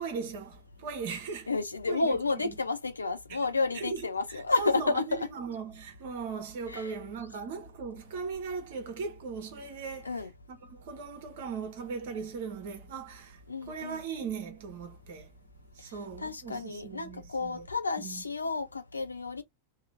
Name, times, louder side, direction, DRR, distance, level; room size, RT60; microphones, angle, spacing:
voice 1, 0.0-1.5 1.9-2.2 3.3-3.4 3.7-15.3 15.7-17.7 18.0-18.2, right 5 dB, 50° right, 0.9 m, -39 dB
voice 2, 1.5-5.3 6.7-6.9 10.0-10.3 13.5-14.0 16.2-19.4, left 3 dB, 80° left, 0.6 m, -31 dB
2.9 x 2.3 x 2.7 m
figure-of-eight pair, 90°, 0 cm